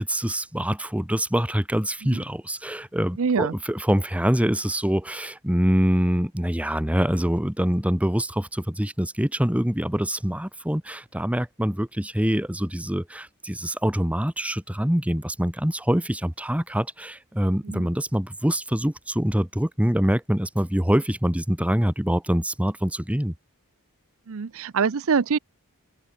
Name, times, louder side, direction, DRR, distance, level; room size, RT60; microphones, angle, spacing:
voice 1, 0.0-23.3, equal, 5° right, 1.3 m, -25 dB
voice 2, 3.2-3.5 17.7-17.9 24.3-25.4, right 5 dB, 65° right, 0.6 m, -24 dB
head